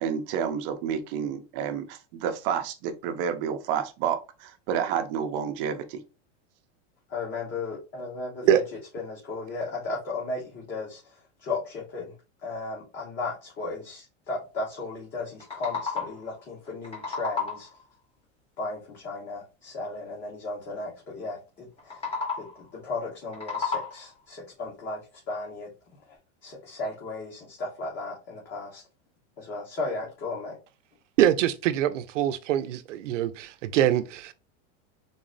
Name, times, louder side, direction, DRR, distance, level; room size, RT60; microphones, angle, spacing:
voice 1, 0.0-6.0, right 8 dB, 50° right, 0.7 m, -30 dB
voice 2, 7.1-8.6 8.9-12.1 12.4-17.7 18.6-25.0 25.3-25.7 26.0-28.8 29.4-30.6, left 3 dB, 30° left, 1.1 m, -35 dB
sound 1, 15.2-16.3 16.7-17.8 21.8-22.7 23.1-24.2, left 5 dB, 15° left, 0.9 m, -33 dB
voice 3, 31.2-34.3, right 11 dB, 90° right, 0.6 m, -24 dB
3.9 x 2.0 x 3.8 m
supercardioid pair, 140°, 36 cm